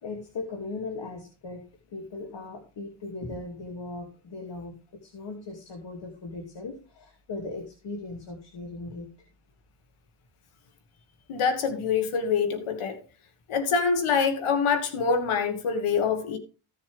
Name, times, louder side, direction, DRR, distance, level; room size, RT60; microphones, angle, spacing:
voice 1, 0.0-1.6 1.9-4.8 5.0-9.1, left 3 dB, 60° left, 2.7 m, -38 dB
voice 2, 11.3-13.0 13.5-16.4, left 5 dB, 90° left, 2.0 m, -25 dB
15.5 x 7.0 x 3.5 m
cardioid pair, 110°, 48 cm